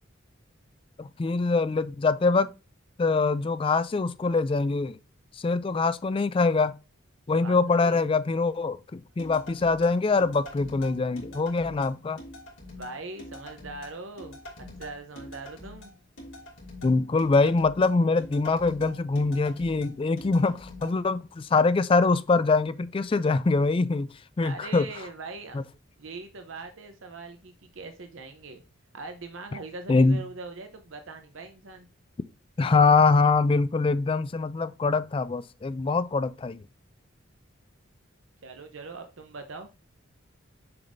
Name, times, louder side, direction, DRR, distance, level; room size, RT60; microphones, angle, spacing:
voice 1, 1.0-2.5 3.0-5.0 5.4-6.7 7.3-12.2 16.8-24.1 24.4-24.9 25.5-25.6 29.9-30.2 32.6-36.6, left 3 dB, 25° left, 0.3 m, -24 dB
voice 2, 7.4-8.1 12.7-14.4 14.8-15.9 24.4-25.6 26.0-28.6 28.9-31.9 38.4-39.7, right 3 dB, 70° right, 0.8 m, -41 dB
sound 1, 9.2-20.9, left 1 dB, 70° left, 2.7 m, -44 dB
6.9 x 5.1 x 2.6 m
head